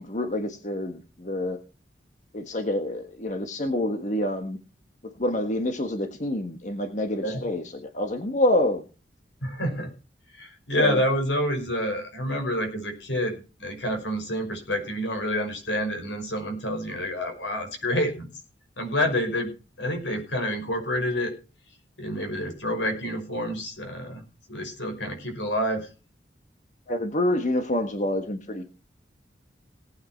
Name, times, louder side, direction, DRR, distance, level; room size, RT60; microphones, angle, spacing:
voice 1, 0.0-1.6 2.3-4.6 5.2-8.8 10.8-11.0 26.9-28.6, left 1 dB, 45° left, 6 dB, 1.5 m, -27 dB
voice 2, 9.4-9.9 10.3-13.3 13.6-18.3 18.8-19.5 19.8-21.3 22.0-24.2 24.5-25.9, equal, 85° left, 5 dB, 5.7 m, -28 dB
18.5 x 9.1 x 4.5 m, 0.33 s
head